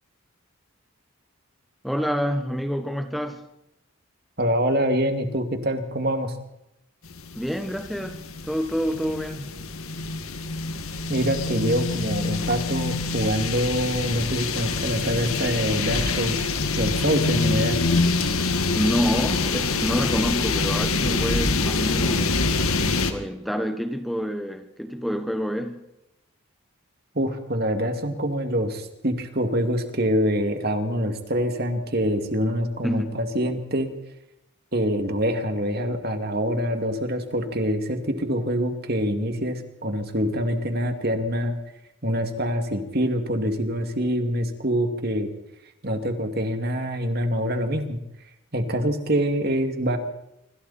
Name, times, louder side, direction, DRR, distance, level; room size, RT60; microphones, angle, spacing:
voice 1, 1.8-3.4 7.3-9.5 18.8-22.4 23.1-25.8 32.8-33.1, equal, ahead, 5 dB, 1.1 m, -27 dB
voice 2, 4.4-6.4 11.1-16.5 16.8-17.8 27.1-33.9 34.7-41.6 42.0-45.3 45.8-48.0 48.5-50.0, equal, 45° right, 6 dB, 2.4 m, -25 dB
sound 1, 7.0-23.1, left 3 dB, 75° left, 2.0 m, -25 dB
26.0 x 25.5 x 4.3 m, 0.85 s
head